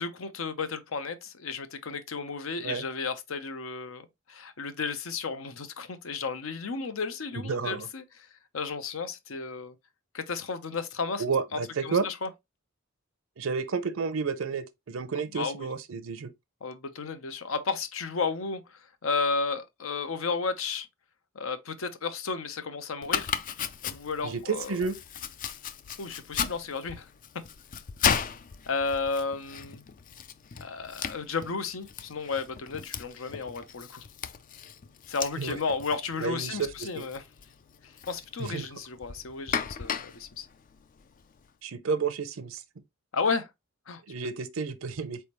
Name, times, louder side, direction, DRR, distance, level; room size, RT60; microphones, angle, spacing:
voice 1, 0.0-8.0 8.5-9.7 10.1-11.2 11.5-12.3 15.3-15.7 16.6-18.6 19.0-20.9 21.3-23.3 23.8-24.8 26.0-27.1 28.7-29.8 30.6-34.1 35.1-37.2 37.8-40.5 43.1-43.5 43.9-44.0, left 4 dB, 75° left, 0.7 m, -33 dB
voice 2, 7.4-7.9 11.2-12.1 13.4-16.3 24.2-25.0 35.4-35.6 36.2-37.0 38.4-38.7 41.6-42.6 44.1-45.2, right 5 dB, 75° right, 0.6 m, -31 dB
Domestic sounds home sounds, 23.0-41.5, left 7 dB, 40° left, 0.4 m, -36 dB
4.2 x 3.4 x 2.9 m
head